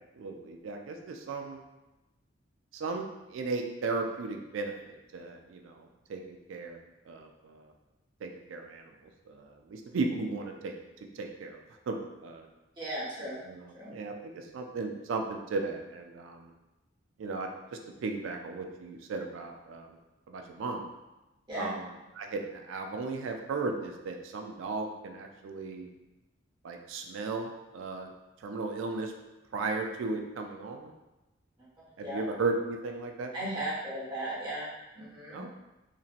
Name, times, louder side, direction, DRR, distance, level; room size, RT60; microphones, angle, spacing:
voice 1, 0.1-1.6 2.7-6.8 7.1-7.7 8.2-8.9 9.3-10.7 11.1-11.6 11.9-12.5 13.5-16.5 17.2-17.5 18.0-19.9 20.3-20.8 21.5-21.9 22.2-25.9 26.6-28.1 28.4-29.1 29.5-30.9 32.0-33.3 33.6-33.7 35.3-35.6, right 3 dB, 80° right, 4 dB, 0.4 m, -36 dB
voice 2, 12.8-13.4 13.7-13.9 21.5-21.7 32.0-32.2 33.3-34.7 34.9-35.4, right 1 dB, 25° right, -8 dB, 1.0 m, -36 dB
2.9 x 2.7 x 2.5 m, 1.0 s
head